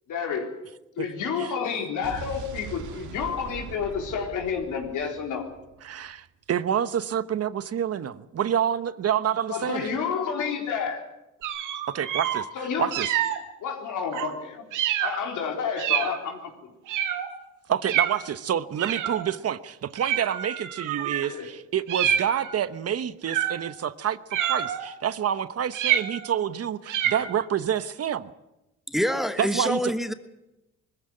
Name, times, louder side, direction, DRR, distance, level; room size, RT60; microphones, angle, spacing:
voice 1, 0.1-0.5 1.0-5.5 9.5-11.0 12.5-12.9 13.6-14.6 15.0-16.7 21.3-21.5, left 6 dB, 80° left, 3 dB, 4.0 m, -30 dB
Explosion, 2.0-6.1, right 5 dB, 75° right, 2.6 m, -41 dB
voice 2, 5.8-9.9 11.9-12.5 12.8-13.1 17.7-28.3 29.4-29.8, right 9 dB, 55° right, 14 dB, 1.1 m, -28 dB
sound 1, 11.4-12.4 12.9-13.4 14.1-14.3 14.7-15.2 15.8-16.2 16.9-17.3 17.8-18.2 18.8-19.3 20.0-21.3 21.9-22.6 23.3-23.7 24.3-24.9 25.7-26.4 26.9-27.3, right 10 dB, 90° right, 2.0 m, -27 dB
voice 3, 28.9-30.1, equal, ahead, 10 dB, 1.4 m, -26 dB
20.5 x 14.5 x 9.8 m, 0.95 s
cardioid pair, 90°, 30 cm